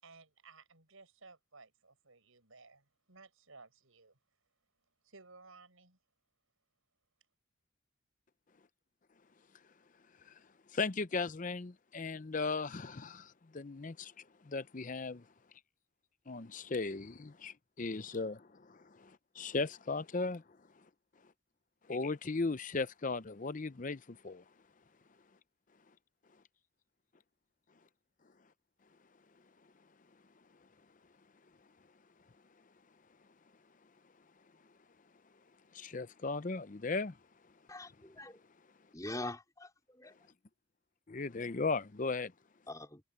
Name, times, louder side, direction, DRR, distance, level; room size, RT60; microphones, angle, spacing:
voice 1, 0.0-4.1 5.0-6.0, right 4 dB, 85° right, 5.9 m, -58 dB
voice 2, 10.7-15.3 16.3-20.4 21.9-24.4 35.7-37.2 41.1-42.3, left 3 dB, 40° left, 0.6 m, -37 dB
voice 3, 37.7-38.4 38.9-40.1 42.7-43.0, left 2 dB, 15° left, 3.9 m, -43 dB
head